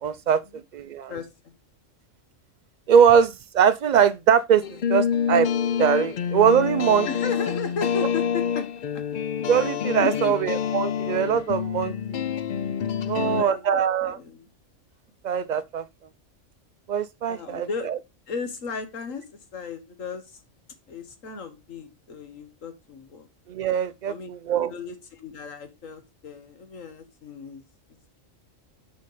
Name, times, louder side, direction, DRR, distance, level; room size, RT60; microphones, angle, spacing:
voice 1, 0.0-0.4 0.7-1.1 2.9-5.5 5.8-7.1 9.5-12.2 13.0-14.2 15.2-15.8 16.9-18.0 23.5-24.7, right 8 dB, 85° right, 0.4 m, -22 dB
voice 2, 1.1-1.5 7.1-8.7 8.9-9.0 10.0-10.4 13.0-14.4 17.3-17.9 18.3-19.3 19.5-20.4 20.9-23.3 24.1-24.3 24.7-27.6, left 5 dB, 90° left, 1.8 m, -35 dB
sound 1, 4.6-13.4, left 8 dB, 55° left, 0.5 m, -27 dB
6.7 x 5.1 x 4.9 m
omnidirectional pair, 1.3 m